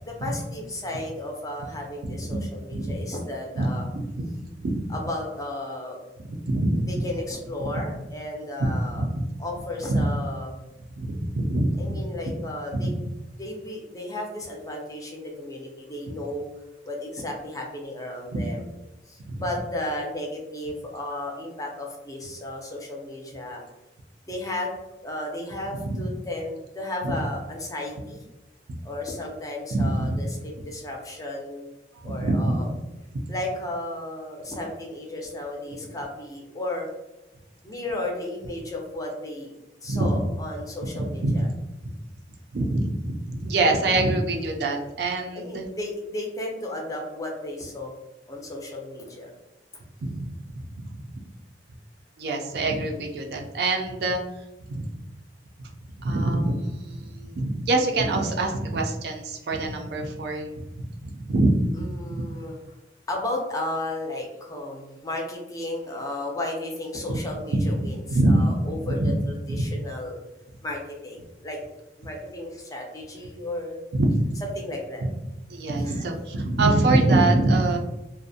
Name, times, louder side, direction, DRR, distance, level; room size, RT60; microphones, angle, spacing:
voice 1, 0.0-3.9 4.9-6.0 6.9-9.1 9.4-10.6 11.8-12.9 13.4-18.7 19.1-23.6 24.3-24.7 25.0-28.2 28.8-30.4 30.6-31.7 32.0-32.7 33.3-36.9 37.6-39.5 39.8-41.5 45.3-47.9 48.3-49.3 61.7-62.6 63.1-70.2 70.6-71.6 72.0-73.8 74.5-75.0 75.8-76.1, left 1 dB, 20° left, 0 dB, 0.4 m, -34 dB
voice 2, 2.0-2.4 2.7-3.0 3.6-4.2 4.6-4.8 6.3-7.1 7.6-7.7 8.6-9.3 9.9-10.0 11.0-11.7 12.7-12.9 18.3-18.4 19.3-19.4 25.7-26.0 27.0-27.2 29.7-30.2 32.0-32.6 33.1-33.2 39.9-40.2 40.9-41.3 41.8-41.9 42.5-45.7 50.0-50.4 50.8-51.0 52.2-54.2 54.7-54.9 56.0-60.5 60.7-61.6 67.1-67.2 67.5-67.6 68.1-68.5 68.9-69.1 69.5-69.7 73.9-74.1 75.5-77.8, right 2 dB, 60° right, 2 dB, 0.4 m, -24 dB
2.5 x 2.0 x 2.6 m, 0.99 s
head